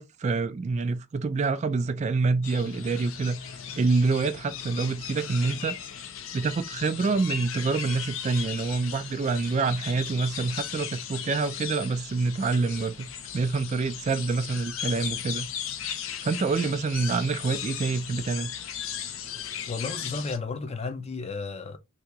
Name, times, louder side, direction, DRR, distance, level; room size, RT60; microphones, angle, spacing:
voice 1, 0.0-5.8 6.3-15.5 16.2-18.5, right 4 dB, 35° right, 0.3 m, -27 dB
sound 1, 2.4-20.4, left 8 dB, 80° left, 0.6 m, -37 dB
voice 2, 19.7-21.8, left 4 dB, 30° left, 0.5 m, -33 dB
2.8 x 2.8 x 3.4 m
head